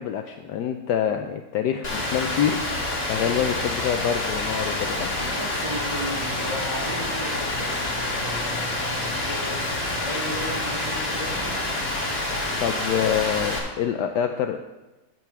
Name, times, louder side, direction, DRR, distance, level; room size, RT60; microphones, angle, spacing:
voice 1, 0.0-5.2 12.6-14.6, left 9 dB, 75° left, 6 dB, 1.1 m, -26 dB
Rain, 1.8-13.6, left 2 dB, 35° left, 1.8 m, -27 dB
voice 2, 5.2-11.5 12.7-13.1, right 1 dB, 15° right, -7 dB, 3.6 m, -36 dB
14.0 x 4.7 x 5.9 m, 1.1 s
omnidirectional pair, 2.0 m